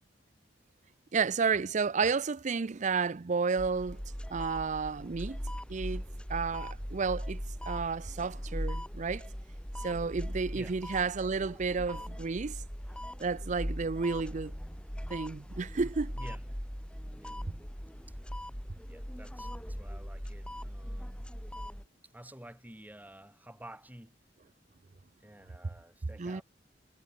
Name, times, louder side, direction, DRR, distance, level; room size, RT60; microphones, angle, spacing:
voice 1, 1.1-4.0 4.3-5.4 5.7-6.0 6.3-9.3 9.8-12.6 13.2-14.5 15.1-16.1 26.2-26.4, right 5 dB, 40° right, 0.5 m, -31 dB
sound 1, 3.6-21.8, equal, 5° left, 4.3 m, -40 dB
voice 2, 18.9-21.3 22.0-24.1 25.2-26.4, right 1 dB, 10° right, 5.4 m, -51 dB
head